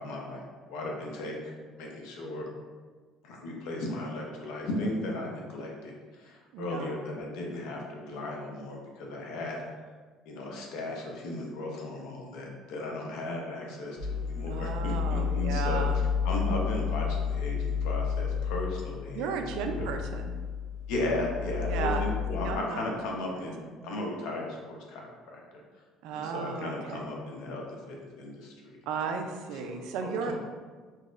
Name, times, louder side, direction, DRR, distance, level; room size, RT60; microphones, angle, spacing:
voice 1, 0.0-2.5 3.2-9.6 10.3-15.9 16.2-19.9 20.9-25.6 26.1-28.8 29.5-30.3, left 1 dB, 80° left, -1 dB, 0.7 m, -36 dB
voice 2, 6.5-7.0 14.5-16.0 19.1-20.3 21.7-22.0 22.4-22.8 23.3-23.4 26.0-27.0 28.9-30.3, right 6 dB, 75° right, 5 dB, 0.4 m, -34 dB
sound 1, 14.0-22.6, left 6 dB, 30° left, 0.6 m, -31 dB
4.0 x 2.8 x 2.4 m, 1.4 s
cardioid pair, 180°, 0 cm